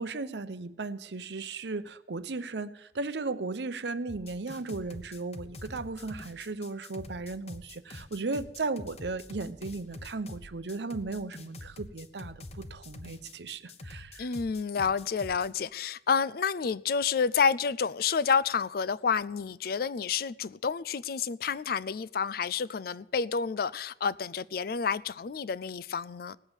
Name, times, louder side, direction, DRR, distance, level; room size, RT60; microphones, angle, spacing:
voice 1, 0.0-14.3, right 3 dB, 75° right, 0.8 m, -36 dB
sound 1, 4.1-15.5, left 2 dB, 35° left, 0.9 m, -46 dB
voice 2, 14.2-26.4, left 6 dB, 55° left, 0.4 m, -29 dB
18.5 x 7.0 x 8.1 m
head